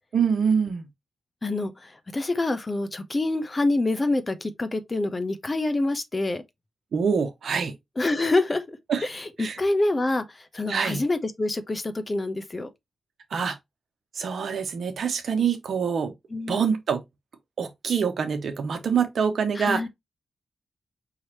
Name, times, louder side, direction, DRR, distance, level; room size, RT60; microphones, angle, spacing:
voice 1, 0.1-0.9 6.9-7.7 8.9-9.1 9.4-9.6 10.7-11.0 13.3-13.6 14.2-16.1 16.5-17.0 17.6-19.8, right 6 dB, 70° right, 0.9 m, -25 dB
voice 2, 1.4-6.4 8.0-10.2 10.5-12.7 16.3-16.6 19.5-19.9, left 2 dB, 35° left, 0.9 m, -26 dB
4.9 x 3.0 x 2.9 m
supercardioid pair, 40°, 0 cm